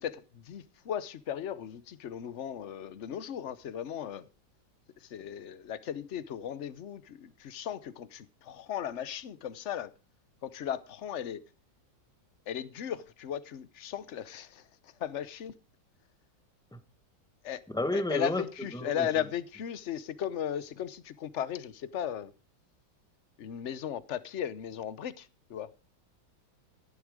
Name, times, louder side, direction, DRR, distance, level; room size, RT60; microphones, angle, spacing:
voice 1, 0.0-4.2 5.0-9.9 10.4-11.4 12.5-15.5 17.4-17.6 17.9-22.3 23.4-25.7, left 9 dB, 55° left, 0.8 m, -36 dB
voice 2, 17.7-18.4 18.7-19.1, left 1 dB, 5° left, 0.6 m, -30 dB
13.5 x 11.0 x 4.9 m
omnidirectional pair, 2.1 m